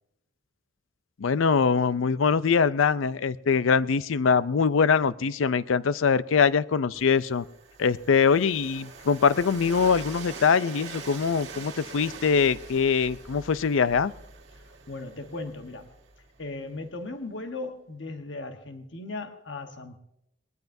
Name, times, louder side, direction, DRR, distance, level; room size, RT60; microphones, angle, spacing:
voice 1, 1.2-7.4 7.8-14.1, left 5 dB, 80° left, 0.5 m, -23 dB
Train, 6.9-16.8, right 4 dB, 60° right, 2.1 m, -44 dB
voice 2, 14.9-15.9 16.4-20.0, left 2 dB, 65° left, 1.1 m, -37 dB
20.5 x 19.5 x 2.7 m
head